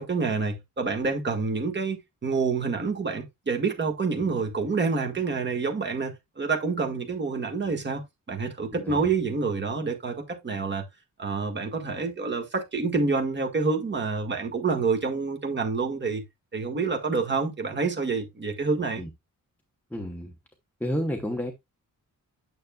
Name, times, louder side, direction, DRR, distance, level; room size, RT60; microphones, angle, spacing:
voice 1, 0.0-8.0 8.3-10.8 11.2-16.2 16.5-19.0, right 4 dB, 35° right, 1.7 m, -27 dB
voice 2, 8.7-9.1 19.0-19.1 19.9-20.3 20.8-21.5, equal, 5° left, 0.9 m, -31 dB
9.4 x 6.5 x 2.3 m
wide cardioid pair, 170°, 33 cm